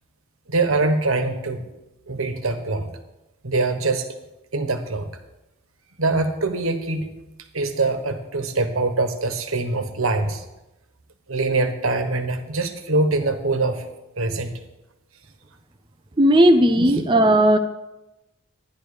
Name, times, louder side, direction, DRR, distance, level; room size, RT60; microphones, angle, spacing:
voice 1, 0.5-1.6 2.1-2.9 3.4-4.1 4.5-5.1 6.0-7.1 7.5-10.4 11.3-13.8 14.2-14.5, right 3 dB, 85° right, 7 dB, 1.4 m, -23 dB
voice 2, 16.2-17.6, right 1 dB, 25° right, 6 dB, 0.5 m, -15 dB
12.0 x 10.5 x 5.1 m, 0.98 s
head